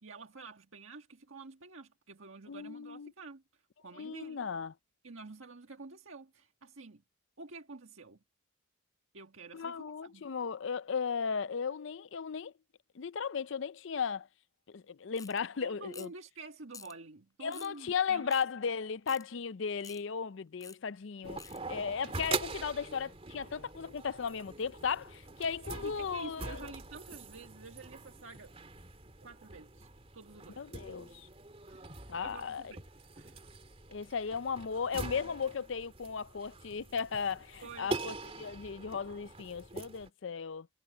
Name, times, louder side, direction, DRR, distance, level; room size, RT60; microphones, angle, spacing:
voice 1, 0.0-3.4 3.8-4.5 5.0-7.0 7.4-8.2 9.1-10.3 15.6-18.3 25.8-28.5 29.2-30.6 31.7-32.9 33.1-33.5 34.1-34.2 37.6-38.0, right 3 dB, 75° right, 1.6 m, -49 dB
voice 2, 2.5-3.1 3.9-4.7 9.5-12.5 13.0-14.3 14.7-16.1 17.4-26.6 30.6-31.3 32.1-32.6 33.9-40.7, left 6 dB, 65° left, 0.5 m, -36 dB
sound 1, 15.2-15.4 15.9-16.2 16.7-16.9 17.5-17.8 18.3-18.4 19.1-19.2 19.8-20.0 20.6-20.8 21.4-21.6, left 6 dB, 15° left, 3.8 m, -49 dB
sound 2, 21.2-40.1, right 3 dB, 30° right, 3.0 m, -43 dB
head